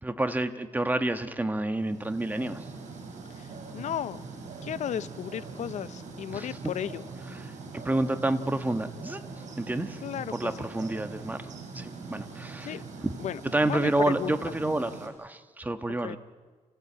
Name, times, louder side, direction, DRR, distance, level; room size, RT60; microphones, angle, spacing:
voice 1, 0.0-2.6 6.3-6.5 7.7-9.2 9.6-10.0 10.4-11.4 11.7-12.7 13.0-13.1 13.5-16.2, right 2 dB, 15° right, 8 dB, 1.3 m, -29 dB
sound 1, 1.7-15.1, right 4 dB, 80° right, 5.7 m, -42 dB
voice 2, 3.3-4.2 4.6-7.0 10.0-10.6 12.6-12.8 13.2-14.4 16.0-16.2, left 9 dB, 75° left, 16 dB, 0.6 m, -35 dB
28.5 x 15.5 x 8.7 m, 1.4 s
cardioid pair, 110°, 12 cm